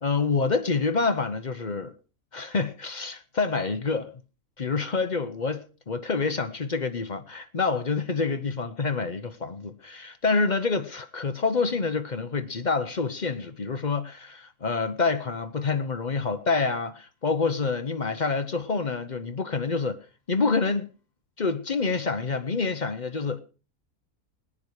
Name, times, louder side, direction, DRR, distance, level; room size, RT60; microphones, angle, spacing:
voice 1, 0.0-1.9 2.3-4.1 4.6-20.0 20.3-20.9 21.4-23.4, left 4 dB, 40° left, 0.8 m, -27 dB
18.5 x 9.8 x 4.7 m
omnidirectional pair, 1.4 m